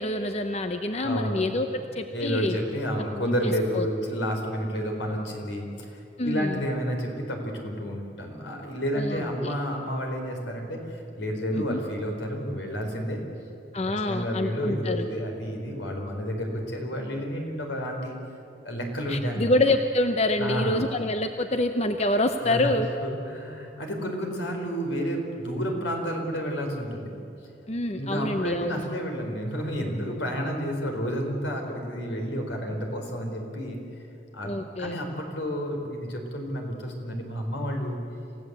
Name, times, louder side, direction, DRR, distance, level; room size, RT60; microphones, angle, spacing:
voice 1, 0.0-1.7 1.9-2.6 3.3-3.9 6.2-6.6 8.9-9.5 11.5-11.8 13.7-15.1 19.1-22.9 27.7-28.8 34.4-35.0, left 1 dB, 35° left, 7 dB, 0.8 m, -26 dB
voice 2, 1.0-1.6 2.1-13.2 14.1-18.1 18.6-19.5 20.4-20.8 22.4-22.7 23.0-27.1 27.9-33.8 34.3-38.0, equal, 85° left, 2 dB, 4.3 m, -30 dB
27.5 x 16.0 x 8.1 m, 2.7 s
head